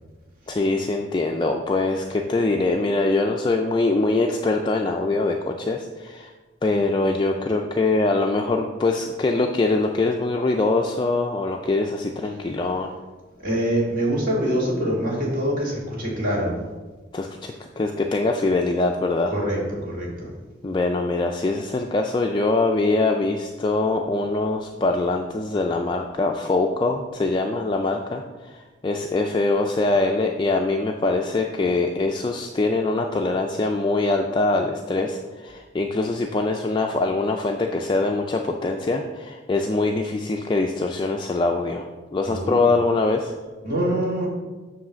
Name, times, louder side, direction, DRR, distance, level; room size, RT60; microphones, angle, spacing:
voice 1, 0.5-6.3 6.6-12.9 17.1-19.3 20.6-41.9 42.1-43.3, left 2 dB, 25° left, 2 dB, 0.3 m, -23 dB
voice 2, 13.4-16.6 19.3-20.3 42.2-42.7 43.6-44.3, equal, 45° right, -4 dB, 2.0 m, -24 dB
7.4 x 3.1 x 6.2 m, 1.3 s
head